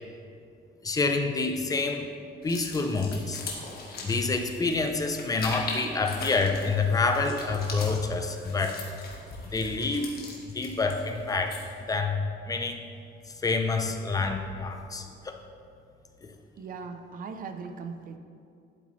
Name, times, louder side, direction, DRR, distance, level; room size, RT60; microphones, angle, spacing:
voice 1, 0.8-2.1 2.4-3.4 4.0-8.8 9.5-10.1 10.5-11.6 11.9-12.8 13.4-15.4, left 3 dB, 20° left, 5 dB, 0.6 m, -27 dB
sound 1, 2.4-11.8, left 3 dB, 55° left, 1.5 m, -40 dB
voice 2, 16.6-18.2, right 5 dB, 45° right, 7 dB, 0.6 m, -39 dB
11.0 x 8.2 x 3.2 m, 2.4 s
cardioid pair, 170°, 20 cm